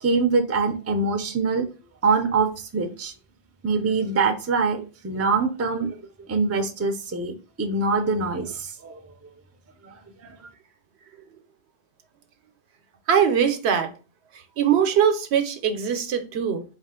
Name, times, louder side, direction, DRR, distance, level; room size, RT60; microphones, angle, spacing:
voice 1, 0.0-1.6 2.0-3.1 3.6-6.0 6.3-7.3 7.6-9.0 9.8-9.9 10.2-10.4, right 4 dB, 25° right, 0.4 m, -24 dB
voice 2, 13.1-13.9 14.6-16.6, right 8 dB, 80° right, 0.9 m, -21 dB
4.4 x 2.4 x 3.6 m
omnidirectional pair, 1.1 m